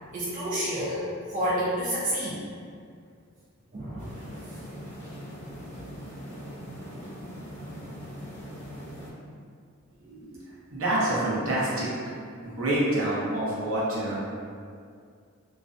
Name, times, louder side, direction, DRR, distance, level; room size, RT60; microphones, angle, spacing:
voice 1, 0.1-2.4 3.7-4.1, equal, 40° right, -8 dB, 0.4 m, -29 dB
sound 1, 4.0-9.1, equal, 30° left, 1.0 m, -41 dB
voice 2, 10.1-10.4 10.7-11.9 12.4-14.2, right 1 dB, 70° right, -7 dB, 0.7 m, -27 dB
2.4 x 2.1 x 2.5 m, 2.2 s
head